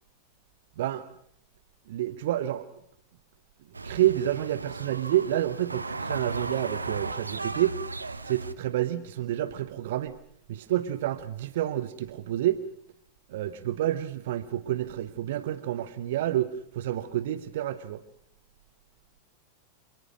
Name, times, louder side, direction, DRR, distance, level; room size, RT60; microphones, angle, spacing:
voice 1, 0.8-1.1 1.9-2.7 3.8-7.8 8.2-10.1 10.5-12.6 13.3-18.0, right 13 dB, 55° right, 14 dB, 1.0 m, -29 dB
sound 1, 3.7-8.5, right 3 dB, 80° right, 1.0 m, -36 dB
27.0 x 19.0 x 6.3 m, 0.67 s
figure-of-eight pair, 90°, 0 cm